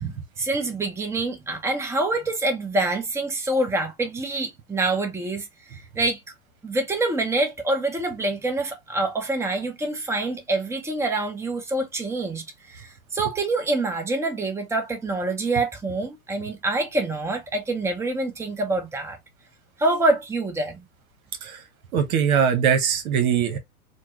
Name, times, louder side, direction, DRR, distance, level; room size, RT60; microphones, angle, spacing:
voice 1, 0.0-6.2 6.6-19.2 19.8-20.8, right 2 dB, 5° right, 0.9 m, -26 dB
voice 2, 21.9-23.6, right 7 dB, 65° right, 1.2 m, -21 dB
4.4 x 2.2 x 2.9 m
hypercardioid pair, 110°, 45 cm